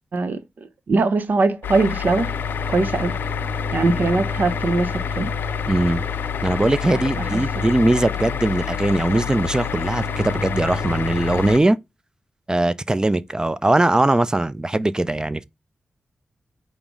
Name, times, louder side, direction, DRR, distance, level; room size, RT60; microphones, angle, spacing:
voice 1, 0.9-2.3 2.7-3.1 3.7-5.3 7.2-7.3, right 3 dB, 65° right, 0.7 m, -21 dB
sound 1, 1.6-11.6, left 9 dB, 85° left, 0.3 m, -28 dB
sound 2, 2.0-11.6, left 1 dB, 10° left, 2.7 m, -33 dB
voice 2, 5.7-6.0 6.4-11.8 12.5-15.4, right 2 dB, 20° right, 0.5 m, -20 dB
5.2 x 2.1 x 4.5 m
cardioid pair, 45°, 3 cm